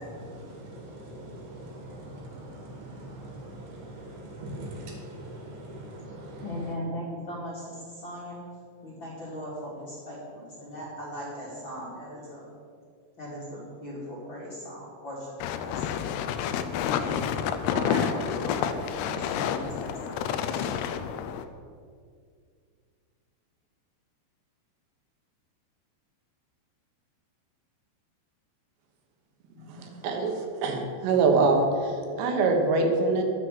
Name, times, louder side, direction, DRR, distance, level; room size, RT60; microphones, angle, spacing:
voice 1, 0.0-6.4, right 1 dB, 60° right, 1 dB, 3.8 m, -42 dB
voice 2, 6.4-8.4 8.8-12.5 13.2-15.3 15.6-16.0 16.7-17.2 17.7-20.8 29.5-29.8, equal, 35° left, -6 dB, 2.6 m, -38 dB
sound 1, 15.4-21.4, left 8 dB, 80° left, 2.6 m, -29 dB
voice 3, 29.7-33.2, right 3 dB, 80° right, 3 dB, 3.6 m, -24 dB
10.5 x 9.5 x 7.5 m, 2.1 s
omnidirectional pair, 5.0 m